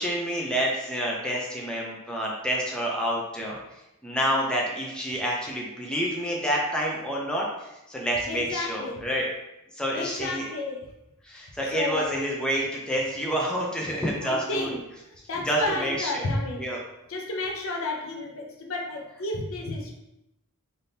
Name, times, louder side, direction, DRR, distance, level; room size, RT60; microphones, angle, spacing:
voice 1, 0.0-3.6 4.0-9.3 9.8-10.4 11.2-14.7 15.5-16.3 16.6-16.8, equal, 5° left, -3 dB, 0.4 m, -28 dB
voice 2, 8.3-9.0 9.9-10.9 11.7-12.2 14.2-14.8 15.3-16.6 17.1-20.0, left 2 dB, 65° left, 1 dB, 0.6 m, -31 dB
3.4 x 2.6 x 2.7 m, 0.91 s
head